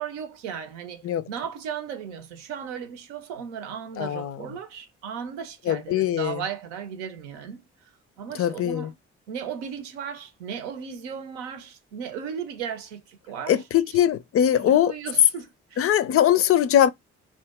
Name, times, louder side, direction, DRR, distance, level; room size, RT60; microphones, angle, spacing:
voice 1, 0.0-1.0 1.3-7.7 8.2-8.9 9.3-13.6 14.5-15.9, right 7 dB, 75° right, 0.7 m, -36 dB
voice 2, 4.0-4.5 5.7-6.4 8.3-8.9 13.5-14.9 15.8-16.9, left 10 dB, 40° left, 0.5 m, -21 dB
2.7 x 2.4 x 3.4 m
figure-of-eight pair, 40°, 35 cm